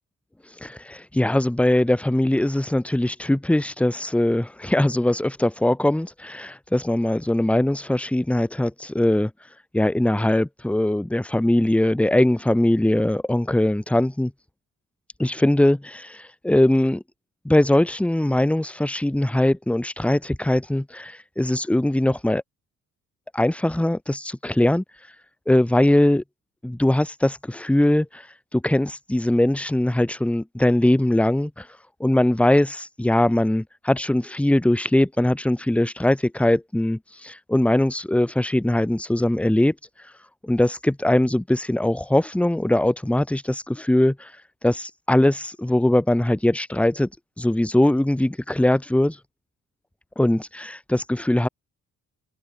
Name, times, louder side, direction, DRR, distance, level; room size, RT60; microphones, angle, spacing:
voice 1, 0.6-9.3 9.7-14.3 15.2-17.0 17.4-22.4 23.3-24.8 25.5-26.2 26.6-28.2 28.5-31.7 32.0-39.7 40.4-44.3 44.6-47.1 47.4-49.2 50.2-51.5, left 1 dB, 5° left, 1.3 m, -21 dB
cardioid pair, 90°, 30 cm